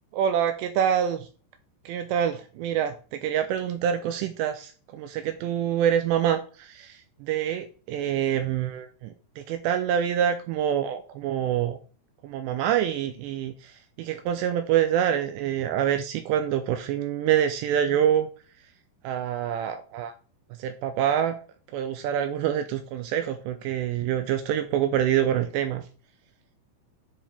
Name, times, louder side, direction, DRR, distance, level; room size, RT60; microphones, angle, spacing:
voice 1, 0.1-1.3 1.9-11.8 12.2-18.3 19.0-20.1 20.6-21.4 21.7-25.8, right 9 dB, 85° right, 8 dB, 2.5 m, -26 dB
10.0 x 4.6 x 3.3 m, 0.37 s
omnidirectional pair, 5.5 m